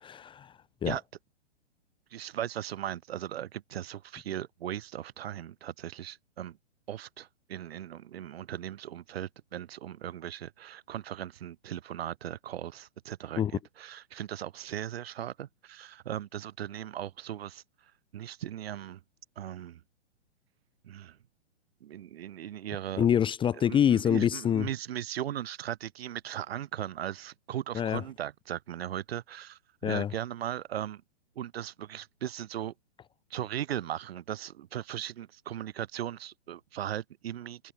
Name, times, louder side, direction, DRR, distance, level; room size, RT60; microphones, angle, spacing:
voice 1, 0.0-0.5 0.8-0.9 13.4-13.5 23.0-24.7 27.7-28.0 29.8-30.1, left 9 dB, 15° left, 1.3 m, -26 dB
voice 2, 2.1-6.6 6.9-13.4 13.8-17.6 18.1-19.0 19.4-19.8 20.8-21.2 21.8-23.1 23.7-31.0 31.3-32.7 33.3-37.7, right 11 dB, 60° right, 6.7 m, -38 dB
hypercardioid pair, 130°, 35 cm